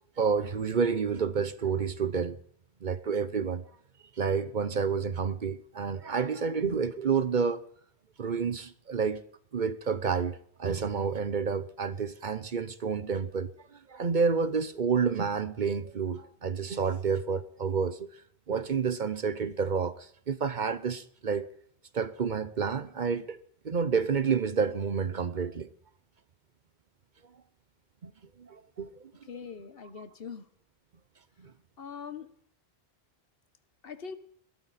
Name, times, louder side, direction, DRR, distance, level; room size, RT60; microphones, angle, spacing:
voice 1, 0.2-2.4 2.8-3.6 4.2-7.6 8.2-9.2 9.5-13.5 13.9-18.1 18.5-21.5 21.9-23.4 23.6-25.7 28.0-28.1 28.4-28.9 31.4-31.5, right 5 dB, 50° right, 0.9 m, -29 dB
voice 2, 29.3-30.5 31.8-32.3 33.8-34.1, left 6 dB, 60° left, 1.3 m, -42 dB
19.5 x 13.0 x 4.2 m
omnidirectional pair, 1.1 m